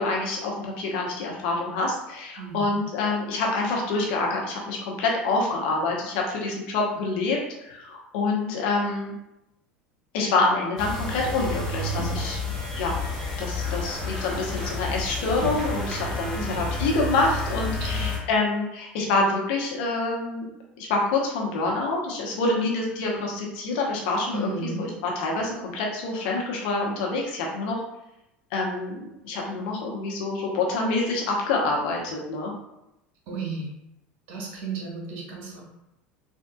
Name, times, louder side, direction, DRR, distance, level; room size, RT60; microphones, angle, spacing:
voice 1, 0.0-9.1 10.1-13.0 13.4-20.5 20.8-27.8 28.5-32.5, left 3 dB, 70° left, -1 dB, 0.8 m, -27 dB
voice 2, 2.4-2.8 16.3-16.6 17.9-18.2 24.3-24.9 33.3-33.7 34.3-35.6, right 3 dB, 65° right, -2 dB, 1.1 m, -33 dB
sound 1, 10.8-18.2, left 2 dB, 5° left, 1.2 m, -30 dB
3.5 x 2.5 x 2.3 m, 0.88 s
hypercardioid pair, 80°, 6 cm